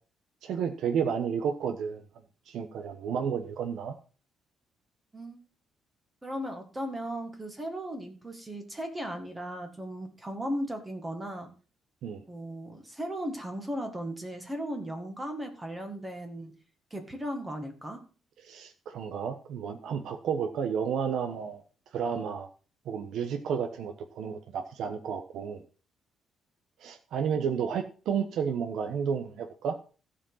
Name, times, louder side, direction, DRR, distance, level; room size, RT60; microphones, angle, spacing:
voice 1, 0.4-2.0 2.5-4.0 12.0-12.2 18.4-21.6 21.9-22.5 22.9-25.6 26.8-29.8, right 7 dB, 70° right, 5 dB, 1.2 m, -31 dB
voice 2, 6.2-11.5 12.3-16.5 16.9-18.0, equal, 15° right, 5 dB, 2.0 m, -36 dB
15.5 x 5.1 x 5.7 m, 0.36 s
cardioid pair, 160°, 0 cm